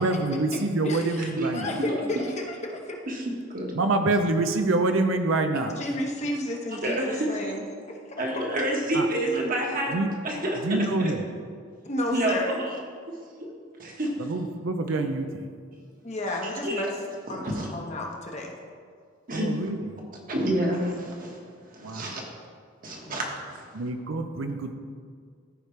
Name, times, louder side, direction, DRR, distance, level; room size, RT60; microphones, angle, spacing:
voice 1, 0.0-1.8 3.7-5.8 8.9-9.1 9.9-10.1 10.6-11.3 14.2-15.5 19.3-20.0 21.8-22.2 23.7-24.7, right 2 dB, 85° right, 7 dB, 0.6 m, -26 dB
voice 2, 0.8-3.0 5.8-8.2 11.8-12.5 16.0-16.9 17.3-18.5, left 1 dB, 35° left, 0 dB, 1.0 m, -32 dB
voice 3, 3.1-3.7 6.8-7.5 8.2-10.0 10.2-10.7 11.0-11.1 12.1-12.6 13.4-13.5 13.8-14.1 16.4-16.9 17.4-17.7 19.3-19.5 20.3-21.4 21.7-22.2 22.8-23.6, right 1 dB, 45° right, -1 dB, 1.5 m, -28 dB
14.0 x 5.1 x 3.2 m, 2.1 s
head